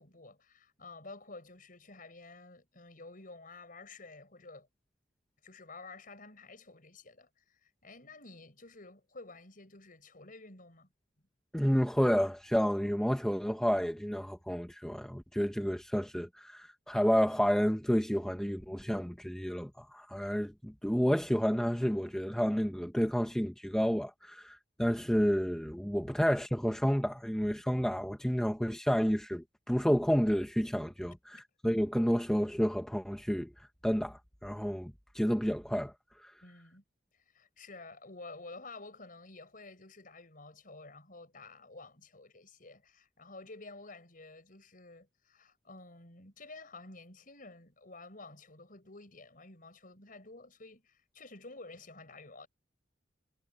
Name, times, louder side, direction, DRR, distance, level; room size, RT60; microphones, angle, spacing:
voice 1, 0.0-4.7 5.4-10.9 31.3-31.4 36.4-36.8 37.1-52.5, left 3 dB, 45° left, 5.9 m, -51 dB
voice 2, 11.5-33.5 33.8-35.9 36.2-36.3, equal, 5° left, 1.2 m, -30 dB
head